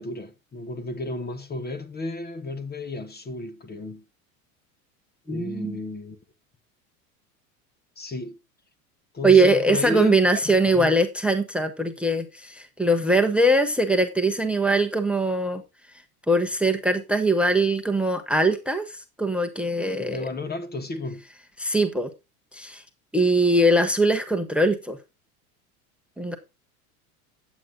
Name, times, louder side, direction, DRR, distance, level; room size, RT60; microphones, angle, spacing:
voice 1, 0.0-4.0 5.3-6.2 8.0-8.4 9.1-10.9 20.0-21.2, left 2 dB, 20° left, 1.2 m, -33 dB
voice 2, 5.3-5.8 9.2-15.6 16.3-20.3 21.6-22.1 22.5-22.8 23.1-25.0 26.2-26.4, right 1 dB, ahead, 1.1 m, -21 dB
9.5 x 8.1 x 3.9 m
hypercardioid pair, 95°, 45 cm